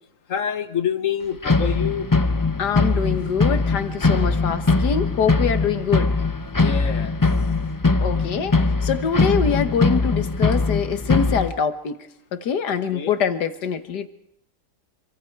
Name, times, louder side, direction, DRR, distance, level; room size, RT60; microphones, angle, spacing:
voice 1, 0.3-2.1 6.6-7.2 12.9-13.2, left 8 dB, 55° left, 1.5 m, -27 dB
sound 1, 1.4-11.5, left 3 dB, 30° left, 0.3 m, -21 dB
voice 2, 2.6-6.1 8.0-12.0 12.3-14.1, left 7 dB, 80° left, 1.9 m, -24 dB
26.5 x 24.5 x 4.7 m
omnidirectional pair, 1.7 m